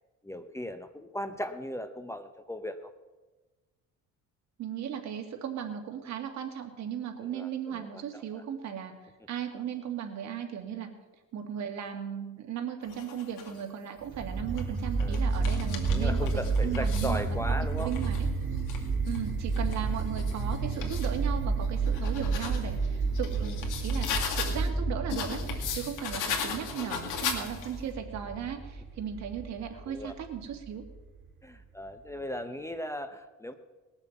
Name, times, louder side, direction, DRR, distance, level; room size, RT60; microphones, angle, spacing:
voice 1, 0.2-2.9 7.2-8.4 15.0-15.3 15.9-17.9 29.9-30.1 31.4-33.5, left 1 dB, 10° left, 9 dB, 0.8 m, -37 dB
voice 2, 4.6-8.9 9.3-10.9 11.3-16.2 16.6-17.4 17.8-18.3 19.1-24.1 24.4-30.8, right 8 dB, 60° right, 4 dB, 2.1 m, -36 dB
sound 1, 12.8-13.6 14.3-17.2 17.7-21.1 21.6-24.7 25.1-27.8, left 7 dB, 80° left, 2.2 m, -38 dB
sound 2, 14.1-31.1, right 4 dB, 40° right, 1.4 m, -31 dB
19.5 x 7.0 x 7.2 m, 1.2 s
cardioid pair, 115°, 31 cm